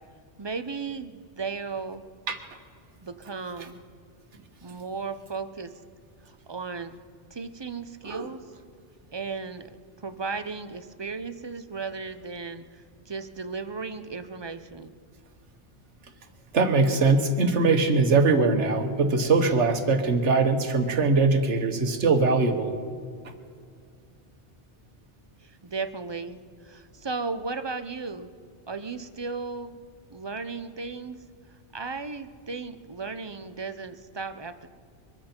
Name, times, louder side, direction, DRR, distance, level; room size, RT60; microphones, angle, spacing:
voice 1, 0.4-2.0 3.0-3.8 4.6-5.7 6.5-6.9 7.3-8.4 9.1-9.7 10.0-12.6 13.1-14.9 25.4-26.4 26.6-28.3 28.7-29.7 30.1-31.2 31.7-34.7, right 4 dB, 30° right, 10 dB, 0.6 m, -35 dB
voice 2, 16.5-22.7, right 3 dB, 90° right, 6 dB, 1.6 m, -22 dB
23.5 x 13.5 x 4.4 m, 2.2 s
omnidirectional pair, 1.2 m